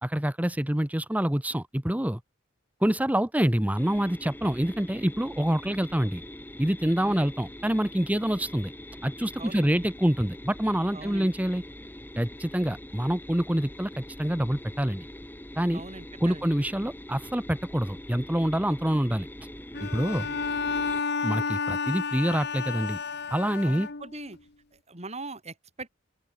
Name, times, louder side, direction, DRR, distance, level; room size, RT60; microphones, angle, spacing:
voice 1, 0.0-2.2 2.8-6.2 6.6-8.7 9.0-11.6 12.2-15.1 15.6-15.8 16.2-19.3 19.8-20.3 21.2-23.0 23.3-23.9, equal, 10° right, 0.9 m, -26 dB
sound 1, 3.8-21.0, left 1 dB, 10° left, 2.6 m, -43 dB
voice 2, 7.0-7.3 9.4-9.8 10.9-11.3 15.7-16.5 20.0-20.4 23.6-24.4 24.7-25.9, right 2 dB, 35° right, 4.1 m, -41 dB
Bowed string instrument, 19.7-24.3, left 5 dB, 55° left, 1.5 m, -31 dB
open air
head